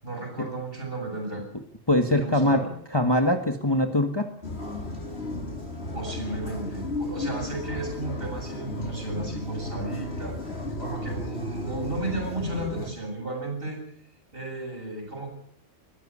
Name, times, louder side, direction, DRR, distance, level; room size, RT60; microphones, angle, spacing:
voice 1, 0.0-1.4 2.2-2.7 5.9-13.8 14.3-15.3, right 2 dB, 50° right, 1 dB, 8.4 m, -34 dB
voice 2, 1.9-2.6 2.9-4.3, left 1 dB, 20° left, 6 dB, 1.5 m, -22 dB
sound 1, 4.4-12.9, left 1 dB, 55° left, 3.6 m, -34 dB
20.5 x 15.5 x 9.8 m, 0.63 s
omnidirectional pair, 1.3 m